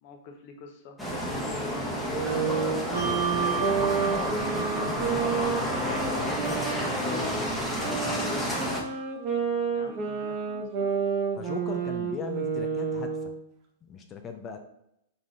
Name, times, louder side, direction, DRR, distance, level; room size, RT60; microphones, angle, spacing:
voice 1, 0.0-1.0 1.4-2.3 3.3-3.9 9.6-11.0, left 4 dB, 50° left, 4 dB, 0.9 m, -44 dB
sound 1, 1.0-8.8, equal, ahead, 1.1 m, -30 dB
sound 2, 2.1-7.3 7.8-13.4, right 6 dB, 40° right, 0.9 m, -30 dB
Bell, 2.9-9.8, right 6 dB, 85° right, 1.4 m, -36 dB
voice 2, 3.0-3.6 4.1-8.5 11.4-13.3 13.8-14.6, left 6 dB, 25° left, 6 dB, 0.5 m, -40 dB
4.8 x 4.0 x 2.4 m, 0.81 s
figure-of-eight pair, 105°, 0 cm